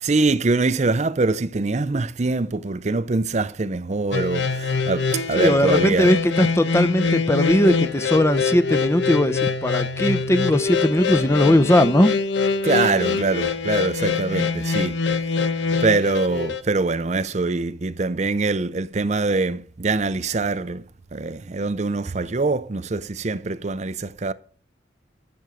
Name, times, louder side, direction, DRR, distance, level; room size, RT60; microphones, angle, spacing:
voice 1, 0.0-6.1 12.6-15.0 15.8-20.8 21.1-24.3, right 3 dB, 35° right, 0.5 m, -23 dB
sound 1, 4.1-16.6, left 5 dB, 75° left, 1.2 m, -24 dB
voice 2, 5.4-12.1, left 1 dB, 15° left, 0.6 m, -19 dB
14.0 x 7.1 x 6.4 m
head